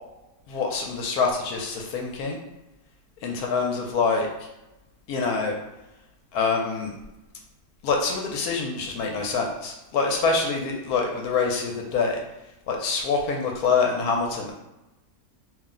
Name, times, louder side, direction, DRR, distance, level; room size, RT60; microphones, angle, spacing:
voice 1, 0.5-2.4 3.2-4.3 5.1-5.5 6.3-7.0 7.8-12.2 12.7-14.5, left 4 dB, 80° left, 1 dB, 1.1 m, -25 dB
2.7 x 2.0 x 3.6 m, 0.96 s
omnidirectional pair, 1.6 m